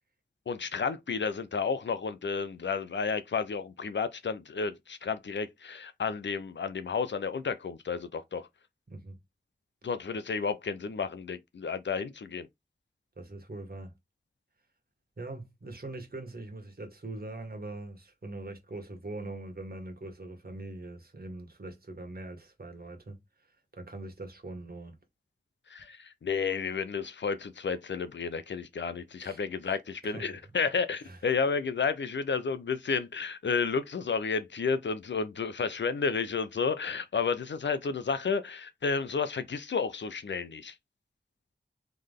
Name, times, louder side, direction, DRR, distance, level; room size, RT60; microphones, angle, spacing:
voice 1, 0.5-8.5 9.8-12.5 25.7-40.7, left 5 dB, 80° left, 0.6 m, -31 dB
voice 2, 8.9-9.2 13.2-13.9 15.2-23.2 23.7-25.0 29.2-29.4 30.0-30.4 31.0-31.2, right 2 dB, 55° right, 1.7 m, -42 dB
3.9 x 3.3 x 3.5 m
cardioid pair, 45°, 18 cm